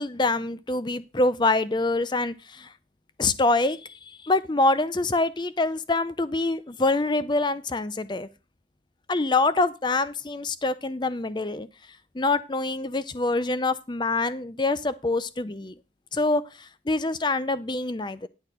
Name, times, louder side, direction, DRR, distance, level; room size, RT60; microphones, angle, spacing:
voice 1, 0.0-2.7 3.2-8.3 9.1-11.7 12.1-15.7 16.1-18.3, left 2 dB, 25° left, 14 dB, 0.6 m, -25 dB
10.5 x 6.4 x 5.0 m, 0.30 s
head